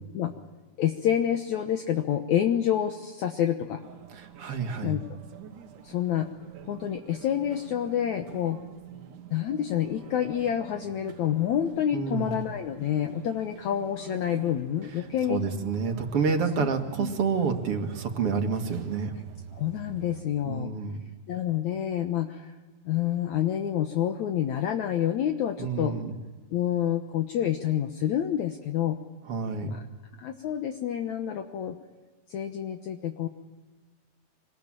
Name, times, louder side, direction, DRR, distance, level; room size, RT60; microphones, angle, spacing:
voice 1, 0.8-3.8 4.8-5.0 5.8-6.3 6.7-8.6 9.3-15.4 16.6-16.7 17.0-17.1 19.6-20.7 21.3-22.5 22.9-26.0 26.5-29.0 29.6-29.8 30.2-31.8 32.3-33.3, left 10 dB, 65° left, 5 dB, 2.2 m, -28 dB
sound 1, 3.8-20.2, right 9 dB, 65° right, 2.8 m, -46 dB
voice 2, 4.1-5.0 11.9-12.4 15.3-19.1 20.5-21.0 25.6-26.2 29.3-29.8, right 5 dB, 45° right, 5 dB, 2.5 m, -29 dB
25.5 x 20.5 x 8.9 m, 1.3 s
omnidirectional pair, 4.0 m